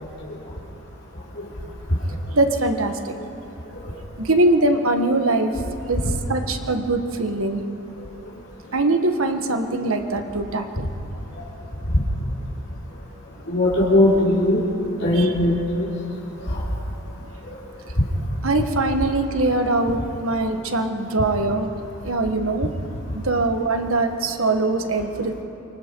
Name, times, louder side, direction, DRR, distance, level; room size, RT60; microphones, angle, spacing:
voice 1, 2.3-3.2 4.2-5.5 5.9-6.0 6.3-7.6 8.7-10.9 15.2-15.3 18.4-22.7 23.1-25.4, right 2 dB, 70° right, 6 dB, 1.5 m, -22 dB
voice 2, 13.5-14.6 15.0-15.9 16.5-16.6, left 1 dB, 55° left, -6 dB, 3.2 m, -19 dB
28.0 x 24.5 x 4.7 m, 2.9 s
head